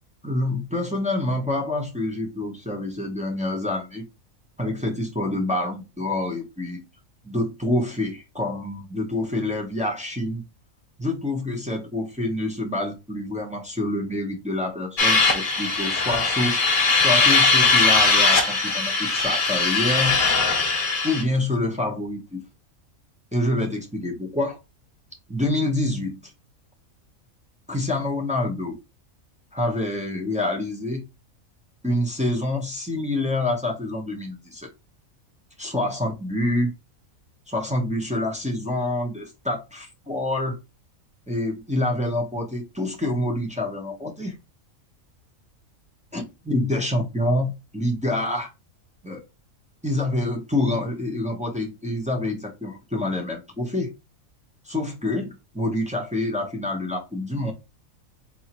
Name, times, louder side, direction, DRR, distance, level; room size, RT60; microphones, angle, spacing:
voice 1, 0.2-4.0 4.6-6.8 7.2-10.4 11.0-16.6 17.0-20.2 21.0-22.4 23.3-24.6 25.3-26.3 27.7-28.8 29.5-31.0 31.8-34.7 35.6-36.7 37.5-40.6 41.3-44.4 46.1-48.5 49.0-49.2 49.8-53.9 54.6-57.5, left 1 dB, 10° right, 0.5 m, -27 dB
sound 1, 15.0-21.2, left 3 dB, 45° left, 0.9 m, -20 dB
4.1 x 2.9 x 2.8 m
omnidirectional pair, 1.4 m